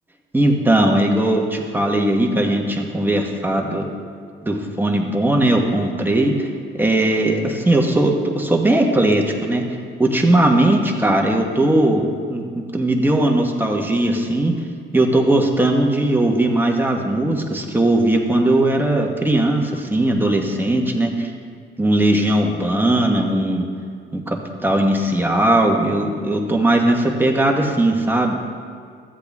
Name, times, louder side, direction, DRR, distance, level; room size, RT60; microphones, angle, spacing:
voice 1, 0.3-3.9 4.4-6.5 6.8-9.6 10.0-12.4 12.7-14.5 14.9-21.3 21.8-23.7 24.1-24.4 24.6-28.3, right 1 dB, 10° right, 1 dB, 1.3 m, -18 dB
14.0 x 8.0 x 3.6 m, 2.2 s
cardioid pair, 90°, 20 cm